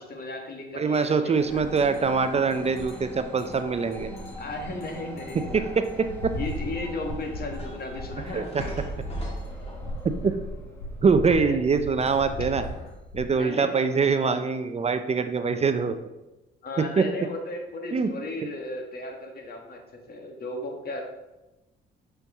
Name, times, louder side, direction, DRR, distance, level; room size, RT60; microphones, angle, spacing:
voice 1, 0.0-1.6 4.4-5.7 6.0-6.1 6.3-8.6 11.4-11.6 13.3-13.7 16.6-19.8 20.1-21.0, left 2 dB, 50° left, 2 dB, 1.5 m, -35 dB
voice 2, 0.8-4.1 5.5-5.8 6.2-6.3 8.3-8.6 10.2-10.3 11.0-12.7 13.1-15.9 17.0-17.1 17.9-18.1, right 5 dB, 30° right, 9 dB, 0.5 m, -23 dB
sound 1, 0.9-1.1 1.4-13.3, left 1 dB, 80° left, 1.2 m, -38 dB
sound 2, 1.4-11.0, left 1 dB, 10° left, 1.3 m, -44 dB
sound 3, 1.6-3.3 4.5-5.1 5.3-5.9 6.3-10.3 12.0-12.9, equal, 30° left, 2.1 m, -41 dB
6.6 x 4.5 x 3.5 m, 1.0 s
supercardioid pair, 70°, 20 cm